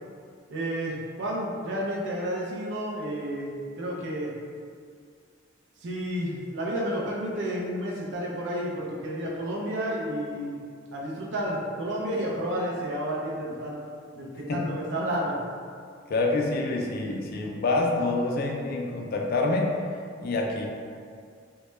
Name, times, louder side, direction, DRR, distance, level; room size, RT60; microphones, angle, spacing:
voice 1, 0.5-4.3 5.8-10.6 10.9-13.8 14.2-15.4, equal, 65° right, -4 dB, 0.4 m, -31 dB
voice 2, 16.1-19.7 20.2-20.7, left 2 dB, 50° left, 0 dB, 0.3 m, -26 dB
2.1 x 2.1 x 2.9 m, 2.2 s
head